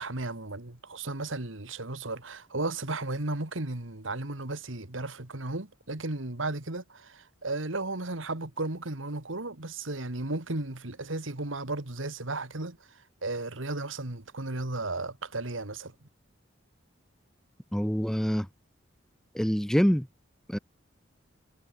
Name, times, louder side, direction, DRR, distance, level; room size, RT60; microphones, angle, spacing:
voice 1, 0.0-15.9, right 2 dB, 90° right, 2.4 m, -34 dB
voice 2, 17.7-18.5 19.3-20.1 20.5-20.6, equal, 5° left, 1.5 m, -25 dB
head